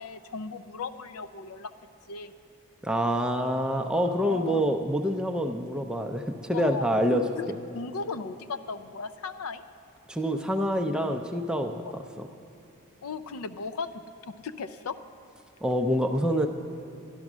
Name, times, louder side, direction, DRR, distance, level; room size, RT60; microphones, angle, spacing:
voice 1, 0.0-1.7 2.1-2.3 4.2-4.8 6.5-6.9 7.1-9.6 13.0-15.0, left 4 dB, 80° left, 11 dB, 0.5 m, -36 dB
voice 2, 2.8-7.2 10.1-12.3 15.6-16.5, equal, 5° right, 4 dB, 0.5 m, -26 dB
12.5 x 12.0 x 6.1 m, 2.7 s
head